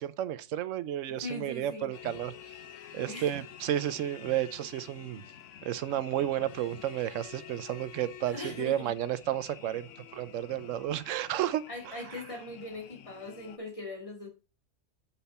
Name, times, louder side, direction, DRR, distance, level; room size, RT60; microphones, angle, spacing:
voice 1, 0.0-2.3 2.9-5.2 5.6-12.0, right 12 dB, 85° right, 1.0 m, -32 dB
voice 2, 1.1-1.9 3.1-3.3 8.3-8.9 11.7-14.3, left 2 dB, 25° left, 2.5 m, -40 dB
sound 1, 1.9-13.6, left 10 dB, 80° left, 1.0 m, -49 dB
6.8 x 5.8 x 4.2 m
omnidirectional pair, 1.3 m